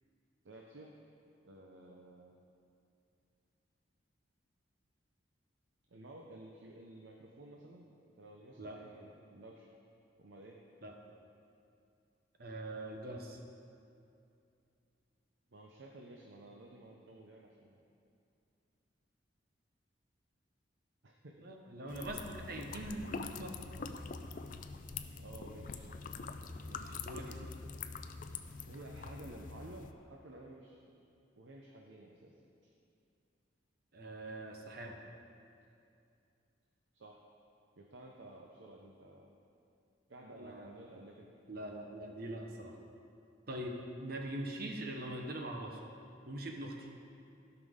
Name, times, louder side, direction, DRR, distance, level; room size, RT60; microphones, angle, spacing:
voice 1, 0.4-1.0 1.4-2.4 5.9-9.7 10.2-10.6 15.5-17.8 21.0-21.3 21.9-22.0 25.2-25.9 28.7-31.0 31.4-32.3 32.6-32.7 36.9-37.2 37.8-39.3 40.1-41.3, right 1 dB, 80° right, -1 dB, 0.8 m, -53 dB
voice 2, 12.4-13.4 21.4-23.7 26.7-27.5 33.9-35.0 40.4-40.8 41.5-42.8 43.5-45.9 46.3-46.9, right 1 dB, 55° right, 2 dB, 1.0 m, -43 dB
sound 1, 21.9-29.9, left 4 dB, 45° left, 0.4 m, -44 dB
16.0 x 6.0 x 3.7 m, 2.6 s
head